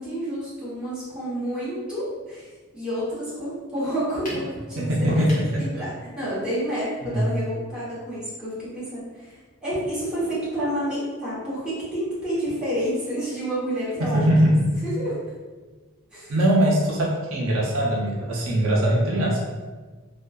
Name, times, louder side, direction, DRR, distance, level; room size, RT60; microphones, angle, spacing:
voice 1, 0.0-2.5 2.7-5.2 5.5-14.2 15.0-15.2 16.1-16.3, equal, 5° right, -11 dB, 0.8 m, -29 dB
sound 1, 4.2-4.5 5.1-5.5, left 1 dB, 35° left, 0.7 m, -34 dB
voice 2, 4.8-5.7 7.1-7.3 14.1-14.8 16.3-19.4, equal, 65° right, -3 dB, 0.4 m, -21 dB
2.5 x 2.2 x 2.2 m, 1.3 s
head